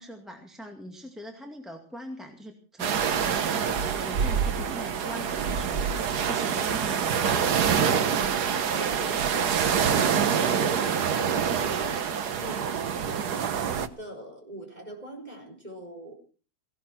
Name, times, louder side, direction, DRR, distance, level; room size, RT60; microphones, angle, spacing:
voice 1, 0.0-5.9 6.2-8.4, equal, ahead, 2 dB, 2.1 m, -41 dB
sound 1, 2.8-13.9, right 7 dB, 90° right, 1.7 m, -26 dB
voice 2, 8.7-16.1, equal, 25° right, 2 dB, 4.3 m, -41 dB
17.5 x 17.5 x 4.4 m, 0.38 s
omnidirectional pair, 1.7 m